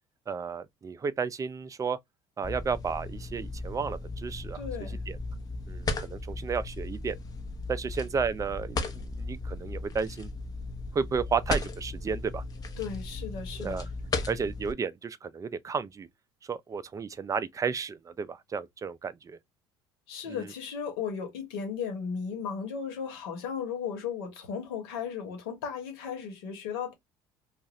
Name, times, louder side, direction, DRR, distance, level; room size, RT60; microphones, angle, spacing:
voice 1, 0.3-2.0 2.4-4.6 4.9-5.2 5.7-7.2 7.7-10.3 10.9-12.4 13.6-13.9 14.3-16.1 16.4-19.4 20.3-20.5, right 5 dB, 25° right, 0.4 m, -32 dB
sound 1, 2.4-14.7, left 3 dB, 30° left, 0.8 m, -36 dB
voice 2, 4.5-5.0 12.8-13.8 20.1-26.9, left 6 dB, 90° left, 1.3 m, -35 dB
2.6 x 2.4 x 3.1 m
supercardioid pair, 80°, 12 cm